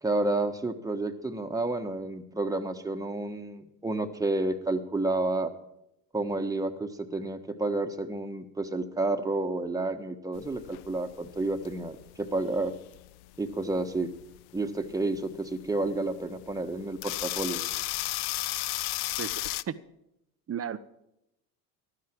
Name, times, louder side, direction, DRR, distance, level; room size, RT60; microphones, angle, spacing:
voice 1, 0.0-5.5 6.1-12.7 13.4-14.1 14.5-17.6, right 2 dB, 5° right, 4 dB, 1.5 m, -30 dB
sound 1, 10.3-19.6, left 18 dB, 55° left, 0.6 m, -35 dB
voice 2, 19.2-19.7 20.5-20.8, right 8 dB, 30° right, 14 dB, 0.9 m, -34 dB
15.5 x 12.0 x 4.7 m, 0.83 s
hypercardioid pair, 75°, 49 cm